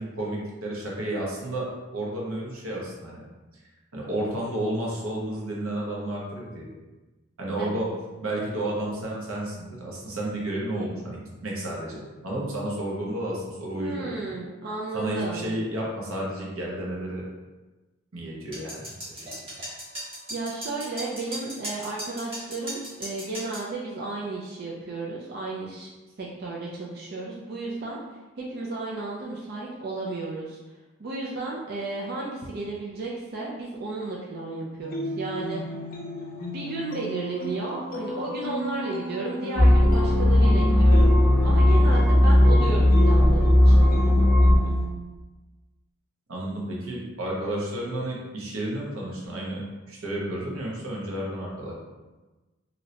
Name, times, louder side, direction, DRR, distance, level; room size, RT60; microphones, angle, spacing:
voice 1, 0.0-1.7 1.9-3.2 3.9-6.7 7.4-7.9 8.2-14.4 14.9-17.2 18.1-19.5 46.3-49.6 49.9-51.7, right 1 dB, 90° right, -4 dB, 0.9 m, -31 dB
voice 2, 13.8-15.5 20.3-25.9 26.2-28.0 28.4-30.6 31.0-35.6 36.5-41.1 41.4-44.1, right 3 dB, 50° right, -4 dB, 0.4 m, -33 dB
sound 1, 18.5-23.7, right 1 dB, 25° right, 1.0 m, -37 dB
sound 2, 34.8-44.9, left 1 dB, 45° left, 0.5 m, -34 dB
sound 3, 39.6-44.6, left 1 dB, 5° right, 0.8 m, -17 dB
3.1 x 2.7 x 2.7 m, 1.2 s
head